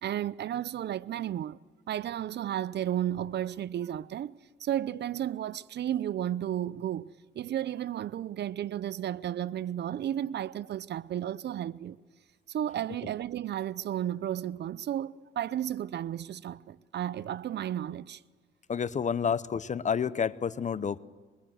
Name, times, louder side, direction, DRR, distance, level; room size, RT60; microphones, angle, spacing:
voice 1, 0.0-1.6 1.9-12.0 12.5-18.2, right 11 dB, 60° right, 0.6 m, -33 dB
voice 2, 18.7-21.0, left 7 dB, 40° left, 0.8 m, -29 dB
24.0 x 23.0 x 7.8 m
cardioid pair, 90°, 20 cm